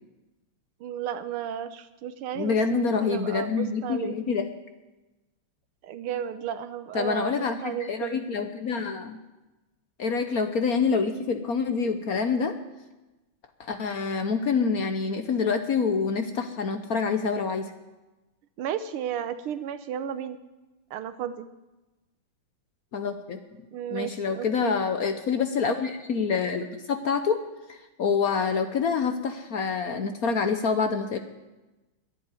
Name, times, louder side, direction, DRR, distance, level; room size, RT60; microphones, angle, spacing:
voice 1, 0.8-4.2 5.8-8.2 18.6-20.4 20.9-21.5 23.7-24.8, right 9 dB, 90° right, 12 dB, 1.8 m, -33 dB
voice 2, 2.3-4.5 6.9-9.2 10.0-12.6 13.6-17.7 22.9-23.4 23.9-27.4 27.7-31.2, left 5 dB, 55° left, 8 dB, 1.1 m, -26 dB
11.0 x 10.5 x 9.7 m, 1.1 s
omnidirectional pair, 2.3 m